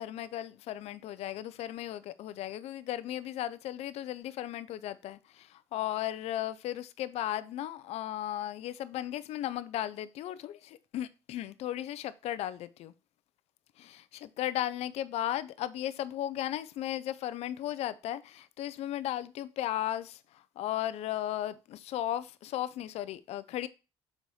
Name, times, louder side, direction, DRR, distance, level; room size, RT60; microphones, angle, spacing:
voice 1, 0.0-12.9 13.8-23.7, left 12 dB, 70° left, 0.6 m, -36 dB
6.4 x 4.1 x 4.8 m
cardioid pair, 90°, 11 cm